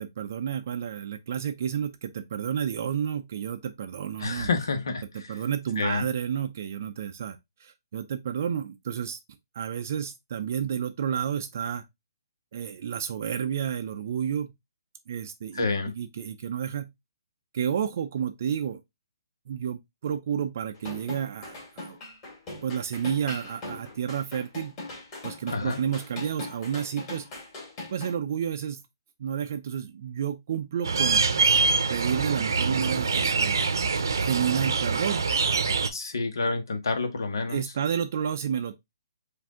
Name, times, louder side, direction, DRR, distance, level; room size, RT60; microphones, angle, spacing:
voice 1, 0.0-4.5 5.3-9.2 9.5-11.8 12.5-14.5 15.1-15.7 15.9-16.9 17.5-18.8 19.5-22.0 22.6-24.7 25.2-27.3 27.9-28.8 29.2-31.2 31.9-33.7 34.2-35.2 36.4-36.5 37.5-38.8, right 8 dB, 45° right, 0.4 m, -30 dB
voice 2, 4.2-5.4 5.8-6.1 15.5-15.9 25.5-25.8 35.9-37.6, left 3 dB, 80° left, 1.2 m, -29 dB
sound 1, 20.7-28.1, left 2 dB, 20° left, 2.1 m, -40 dB
sound 2, 30.8-35.9, right 4 dB, 80° right, 0.7 m, -24 dB
4.8 x 2.6 x 3.5 m
hypercardioid pair, 165°, 2 cm